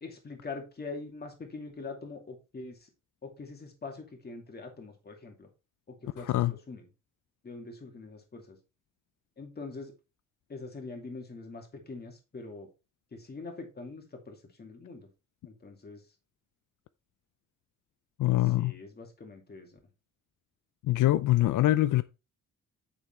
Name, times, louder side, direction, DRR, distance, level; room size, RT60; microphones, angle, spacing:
voice 1, 0.0-2.9 3.2-5.5 5.9-6.9 7.4-8.6 9.4-9.9 10.5-12.7 13.1-15.1 15.4-16.0 18.4-19.8, left 3 dB, 30° left, 2.5 m, -43 dB
voice 2, 18.2-18.7 20.9-22.0, left 15 dB, 80° left, 0.5 m, -24 dB
8.4 x 6.9 x 3.4 m
wide cardioid pair, 140°, 31 cm